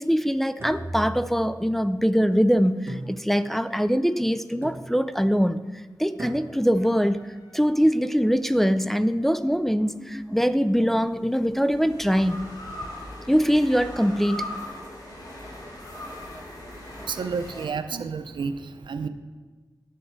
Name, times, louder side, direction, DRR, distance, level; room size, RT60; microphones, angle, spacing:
voice 1, 0.0-5.6 6.0-7.3 7.5-12.4 13.3-14.4 17.0-17.1, equal, 5° left, 0.4 m, -22 dB
sound 1, 0.6-1.8 2.9-3.7 4.6-5.2 6.2-6.9, right 1 dB, 35° right, 1.7 m, -38 dB
sound 2, 6.7-8.3 10.1-17.7, left 1 dB, 55° left, 3.0 m, -40 dB
voice 2, 17.1-19.1, right 5 dB, 90° right, 0.5 m, -30 dB
11.5 x 6.4 x 4.5 m
cardioid pair, 60°, 8 cm